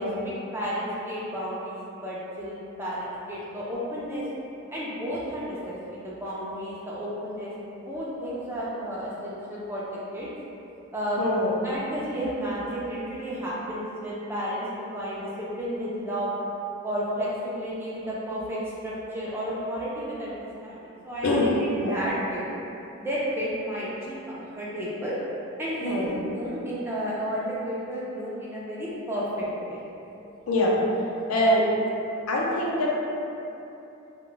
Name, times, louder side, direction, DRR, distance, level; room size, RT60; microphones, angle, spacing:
voice 1, 0.0-4.3 4.7-7.5 7.9-10.3 10.9-11.2 11.6-16.3 16.8-22.5 23.0-25.2 25.6-29.8, equal, 10° right, -8 dB, 0.3 m, -32 dB
voice 2, 11.2-11.6 21.2-21.5 21.8-21.9 25.8-26.1 30.5-30.7 31.3-31.6 32.3-32.9, left 1 dB, 85° left, -4 dB, 0.5 m, -24 dB
2.2 x 2.0 x 3.7 m, 2.9 s
head